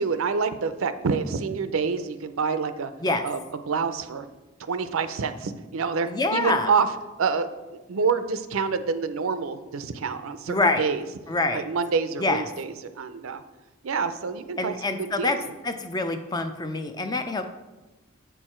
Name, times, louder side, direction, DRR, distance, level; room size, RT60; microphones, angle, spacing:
voice 1, 0.0-2.9 3.2-3.4 3.7-4.3 4.7-7.5 7.7-11.0 11.5-13.4 13.8-15.5, right 5 dB, 85° right, 11 dB, 0.5 m, -27 dB
voice 2, 6.1-6.7 10.5-10.8 11.3-11.6 12.2-12.4 14.6-15.4 15.6-17.5, left 2 dB, 20° left, 7 dB, 0.4 m, -25 dB
7.9 x 4.7 x 4.4 m, 1.1 s
head